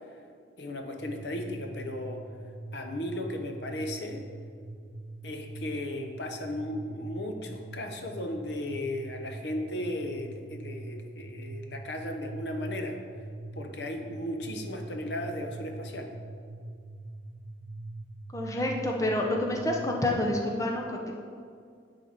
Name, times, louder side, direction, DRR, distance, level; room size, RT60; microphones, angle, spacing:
voice 1, 0.6-2.2 2.7-4.3 5.2-13.0 13.5-16.1, left 1 dB, 65° left, 4 dB, 0.9 m, -36 dB
sound 1, 1.0-20.5, right 2 dB, 85° right, 0.8 m, -43 dB
voice 2, 18.3-21.1, left 1 dB, 15° left, 0 dB, 0.7 m, -28 dB
9.9 x 4.1 x 6.6 m, 2.2 s
head